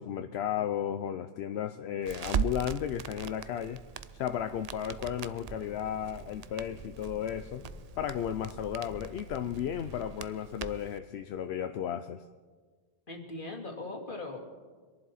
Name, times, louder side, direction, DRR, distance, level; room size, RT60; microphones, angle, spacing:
voice 1, 0.0-3.8 4.1-7.6 8.0-12.2, left 9 dB, 80° left, 9 dB, 0.8 m, -34 dB
Crackle, 2.0-11.0, right 8 dB, 50° right, 0.5 m, -40 dB
sound 1, 3.6-10.1, left 2 dB, 35° left, 1.0 m, -50 dB
voice 2, 13.1-14.4, left 2 dB, 55° left, 1 dB, 2.3 m, -39 dB
25.5 x 11.0 x 4.2 m, 1.6 s
omnidirectional pair, 1.1 m